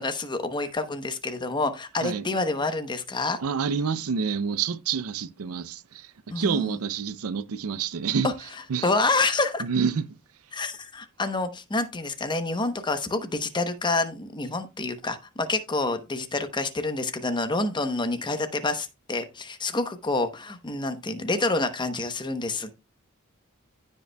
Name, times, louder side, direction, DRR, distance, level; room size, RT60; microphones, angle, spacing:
voice 1, 0.0-3.4 6.3-6.8 8.2-8.3 8.8-9.6 10.5-22.7, left 3 dB, 20° left, 0.8 m, -28 dB
voice 2, 3.4-8.3 8.7-8.9 9.6-10.0, right 6 dB, 85° right, 0.5 m, -28 dB
15.5 x 5.2 x 2.2 m
head